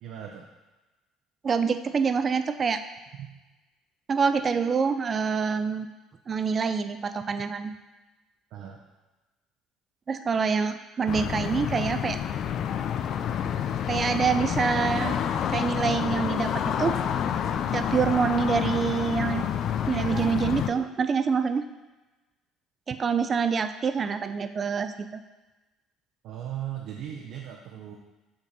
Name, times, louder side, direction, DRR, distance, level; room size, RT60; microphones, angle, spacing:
voice 1, 0.0-0.5 3.2-3.3 8.5-8.8 26.2-28.0, right 10 dB, 70° right, 0 dB, 0.7 m, -37 dB
voice 2, 1.4-2.8 4.1-5.9 6.3-7.7 10.1-12.2 13.9-15.2 15.5-17.0 17.7-19.4 19.9-21.7 22.9-25.1, right 5 dB, 40° right, 10 dB, 0.4 m, -26 dB
sound 1, 11.1-20.7, left 9 dB, 60° left, 0.4 m, -28 dB
7.2 x 3.7 x 4.1 m, 1.1 s
supercardioid pair, 80°, 0 cm